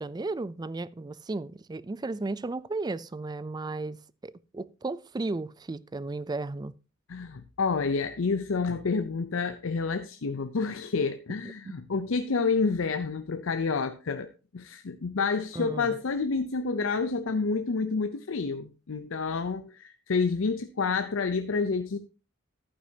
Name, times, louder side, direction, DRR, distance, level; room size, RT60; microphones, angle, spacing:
voice 1, 0.0-4.0 4.2-6.7 15.5-16.0, right 3 dB, 20° right, 0.4 m, -34 dB
voice 2, 7.1-22.0, left 4 dB, 75° left, 0.6 m, -29 dB
11.5 x 9.3 x 2.8 m
head